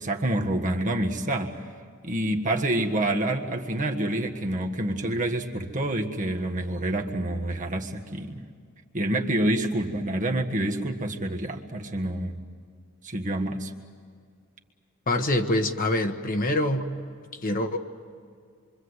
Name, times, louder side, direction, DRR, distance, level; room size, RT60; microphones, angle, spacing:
voice 1, 0.0-1.6 2.0-8.5 8.9-12.4 13.0-13.7, right 1 dB, 35° right, 2 dB, 1.6 m, -27 dB
voice 2, 15.1-16.9 17.4-17.8, left 1 dB, 40° left, 5 dB, 1.4 m, -25 dB
26.5 x 24.5 x 8.1 m, 2.2 s
head